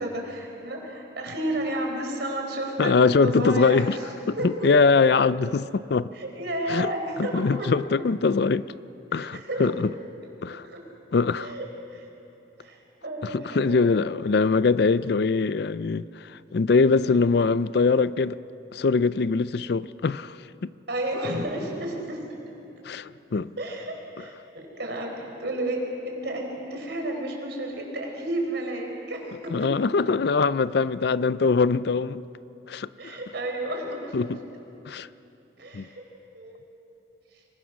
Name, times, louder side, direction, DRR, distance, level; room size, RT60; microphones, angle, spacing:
voice 1, 0.0-4.0 4.4-4.9 6.1-7.7 9.1-9.7 10.6-10.8 11.4-11.6 11.9-12.1 12.6-13.9 17.0-17.2 20.9-22.2 23.6-29.7 33.0-34.1 35.6-36.0 36.3-36.6 37.3-37.4, right 1 dB, 60° right, 4.4 m, -32 dB
voice 2, 2.8-4.0 4.3-6.1 6.7-6.9 7.2-8.7 9.1-9.9 10.4-10.6 11.1-11.5 13.2-18.4 18.7-20.4 20.6-20.7 22.8-23.5 29.5-32.2 32.7-33.2 34.1-34.4 34.9-35.1 35.7-35.9, left 4 dB, 55° left, 0.4 m, -22 dB
26.0 x 22.0 x 6.3 m
head